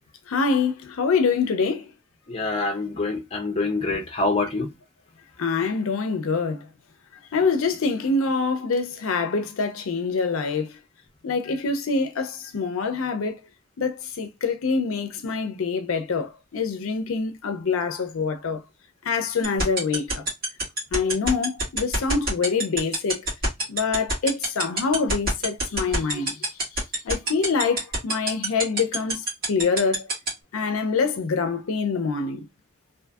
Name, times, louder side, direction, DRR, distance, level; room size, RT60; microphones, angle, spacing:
voice 1, 0.3-1.9 5.4-6.7 7.3-10.8 11.2-13.4 13.8-18.6 19.0-20.2 20.9-23.2 23.7-26.3 27.0-30.0 30.5-32.4, left 4 dB, 75° left, 0.5 m, -25 dB
voice 2, 2.3-4.7, left 3 dB, 25° left, 0.6 m, -26 dB
sound 1, 19.4-30.3, right 2 dB, 45° right, 1.5 m, -24 dB
2.5 x 2.5 x 2.3 m
head